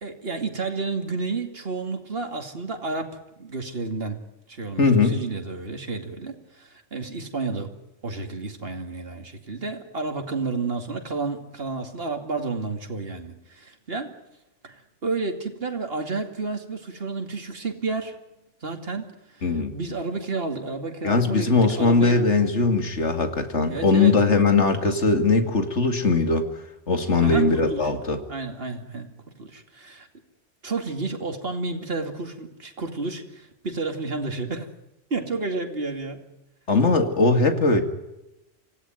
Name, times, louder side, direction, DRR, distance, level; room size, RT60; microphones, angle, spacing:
voice 1, 0.0-4.2 4.5-7.7 8.0-14.2 14.6-18.1 18.6-22.2 23.7-24.1 27.2-27.9 28.3-30.1 30.6-34.7 35.1-36.2, right 3 dB, 55° right, 5 dB, 2.8 m, -31 dB
voice 2, 4.8-5.2 19.4-19.7 21.0-26.4 26.9-28.2 36.7-37.8, left 3 dB, 70° left, 6 dB, 2.8 m, -20 dB
26.0 x 17.0 x 9.3 m, 0.94 s
omnidirectional pair, 1.2 m